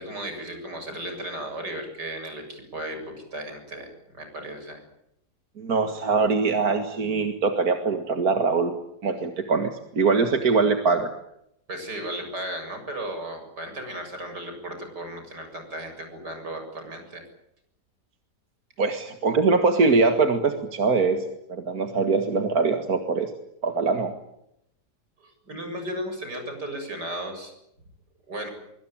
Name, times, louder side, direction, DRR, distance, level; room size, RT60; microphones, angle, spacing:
voice 1, 0.0-4.8 11.7-17.2 25.2-27.5 28.3-28.5, right 1 dB, 75° right, 5 dB, 8.1 m, -35 dB
voice 2, 5.6-8.7 9.0-11.1 18.8-21.2 21.5-23.3 23.6-24.1, right 4 dB, 60° right, 6 dB, 2.3 m, -22 dB
24.0 x 24.0 x 8.9 m, 0.80 s
omnidirectional pair, 1.8 m